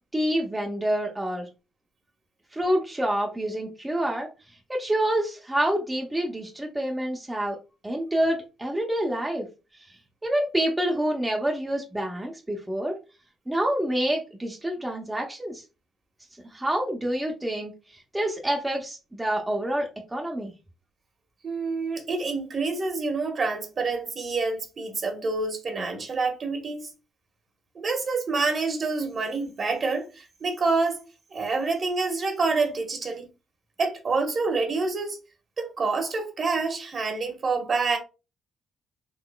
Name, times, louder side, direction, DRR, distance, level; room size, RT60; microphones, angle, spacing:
voice 1, 0.1-1.5 2.5-4.3 4.7-7.6 7.8-9.5 10.2-13.0 13.5-15.6 16.5-17.7 18.1-20.5, right 1 dB, 10° right, 0.7 m, -27 dB
voice 2, 21.4-26.9 27.7-31.0 31.3-33.3 33.8-35.2 35.6-38.0, right 4 dB, 45° right, 1.2 m, -27 dB
3.8 x 2.9 x 2.2 m
cardioid pair, 90°, 0 cm